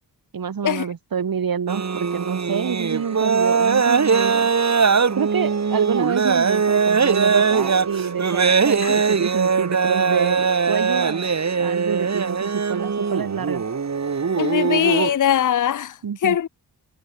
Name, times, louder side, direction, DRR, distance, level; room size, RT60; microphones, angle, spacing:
voice 1, 0.3-4.5 5.1-11.3 11.6-13.6 16.0-16.4, right 7 dB, 55° right, 3.3 m, -27 dB
sound 1, 1.7-15.2, right 5 dB, 40° right, 2.8 m, -21 dB
voice 2, 14.4-16.5, left 10 dB, 50° left, 0.8 m, -21 dB
wide cardioid pair, 105°, 41 cm